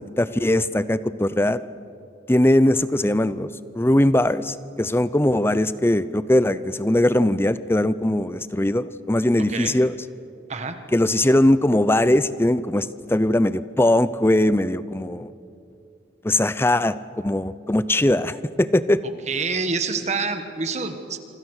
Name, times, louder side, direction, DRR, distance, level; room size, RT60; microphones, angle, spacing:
voice 1, 0.0-1.6 2.3-3.5 3.7-9.9 10.9-15.3 16.2-19.0, left 1 dB, 15° left, 15 dB, 0.6 m, -20 dB
voice 2, 19.3-21.2, right 4 dB, 40° right, 7 dB, 1.4 m, -27 dB
27.0 x 26.0 x 6.5 m, 2.6 s
head